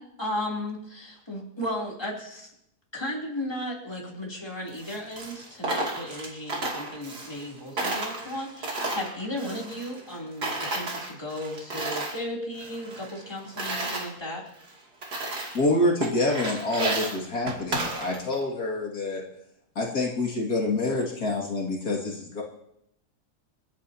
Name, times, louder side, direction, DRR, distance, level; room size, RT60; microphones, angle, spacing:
voice 1, 0.0-2.5 2.9-14.5, left 1 dB, 15° left, -3 dB, 3.1 m, -35 dB
Coin (dropping), 4.7-7.5 7.8-10.2 10.4-12.2 12.5-14.1 14.6-14.7 15.0-15.7 16.0-18.4, right 2 dB, 80° right, 3.3 m, -32 dB
voice 2, 15.5-19.2 19.8-22.4, left 2 dB, 75° left, -2 dB, 2.7 m, -27 dB
29.5 x 10.0 x 2.8 m, 0.76 s
omnidirectional pair, 1.7 m